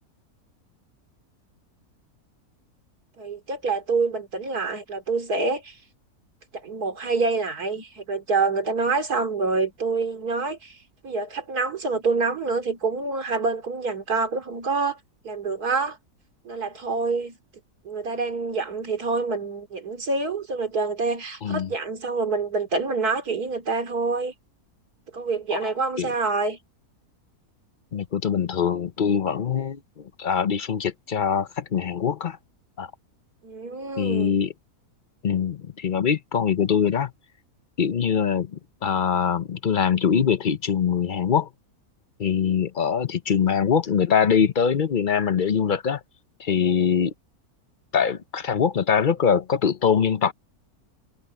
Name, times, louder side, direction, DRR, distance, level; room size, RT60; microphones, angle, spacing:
voice 1, 3.2-5.7 6.5-10.8 11.0-15.0 15.2-16.0 16.4-17.4 17.8-24.3 25.1-26.6 33.4-34.3, right 4 dB, 80° right, 3.3 m, -26 dB
voice 2, 27.9-29.8 30.2-32.4 32.8-32.9 34.0-34.5 35.2-37.1 37.8-41.5 42.2-46.0 46.4-47.1 47.9-50.3, left 7 dB, 45° left, 0.7 m, -23 dB
omnidirectional pair, 1.6 m